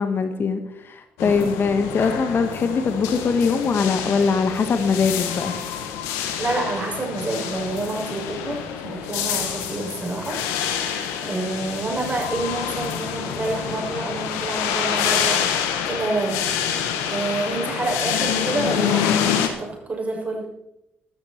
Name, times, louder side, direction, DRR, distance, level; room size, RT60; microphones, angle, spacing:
voice 1, 0.0-5.5, left 5 dB, 50° left, 8 dB, 1.5 m, -22 dB
sound 1, 1.2-19.5, left 8 dB, 75° left, 1.6 m, -27 dB
voice 2, 1.2-1.5 6.4-10.4 11.2-15.4 15.8-16.6 17.0-20.4, right 2 dB, 30° right, 0 dB, 6.4 m, -28 dB
15.0 x 12.5 x 4.5 m, 0.87 s
hypercardioid pair, 50°, 5 cm